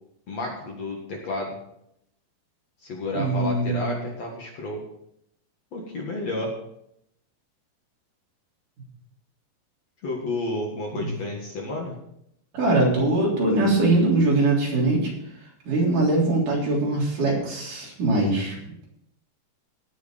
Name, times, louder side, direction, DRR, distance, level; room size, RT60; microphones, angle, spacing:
voice 1, 0.3-1.5 2.8-4.8 5.7-6.5 10.0-12.0, left 2 dB, 50° left, -1 dB, 2.5 m, -31 dB
voice 2, 3.1-3.9 12.5-15.1 15.7-18.6, right 2 dB, 55° right, -4 dB, 4.8 m, -22 dB
18.5 x 6.3 x 5.1 m, 0.75 s
omnidirectional pair, 4.4 m